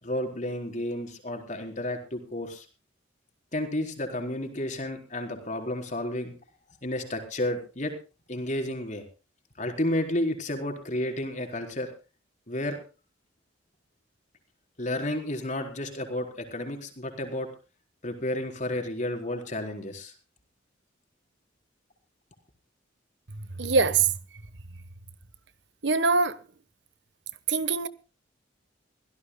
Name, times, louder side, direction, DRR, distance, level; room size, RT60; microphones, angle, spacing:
voice 1, 0.0-2.7 3.5-6.3 6.8-7.9 8.3-9.0 9.6-11.9 12.5-12.8 14.8-17.5 18.0-20.1, left 1 dB, 40° left, 4.2 m, -31 dB
voice 2, 23.6-24.1 25.8-26.4 27.5-27.9, right 4 dB, 65° right, 1.1 m, -23 dB
24.0 x 17.0 x 2.2 m
head